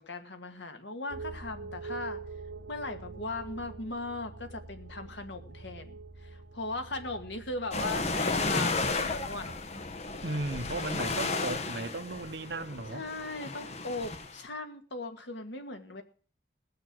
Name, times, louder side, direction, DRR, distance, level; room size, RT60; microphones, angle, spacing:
voice 1, 0.0-2.2 2.7-9.6 11.1-11.7 12.9-16.0, left 2 dB, 70° left, 2.0 m, -38 dB
sound 1, 1.1-9.6, right 4 dB, 85° right, 1.0 m, -45 dB
sound 2, 7.7-14.3, left 3 dB, 35° left, 1.1 m, -33 dB
voice 2, 10.2-13.1, right 2 dB, 65° right, 0.9 m, -35 dB
19.0 x 6.8 x 6.2 m
head